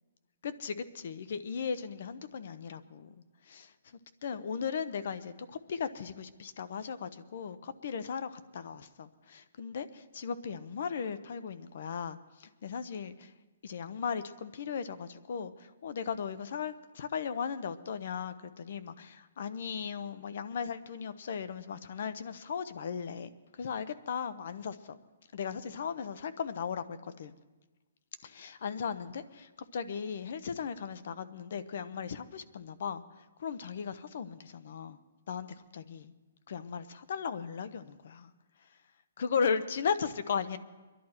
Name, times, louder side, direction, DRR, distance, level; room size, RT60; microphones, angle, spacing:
voice 1, 0.4-3.7 4.2-13.3 13.6-25.0 25.3-27.3 28.2-33.0 33.4-35.0 35.3-35.5 35.7-36.1 36.5-38.3 39.2-40.6, left 6 dB, 55° left, 13 dB, 0.8 m, -37 dB
23.0 x 11.0 x 4.3 m, 1.2 s
hypercardioid pair, 160°, 0 cm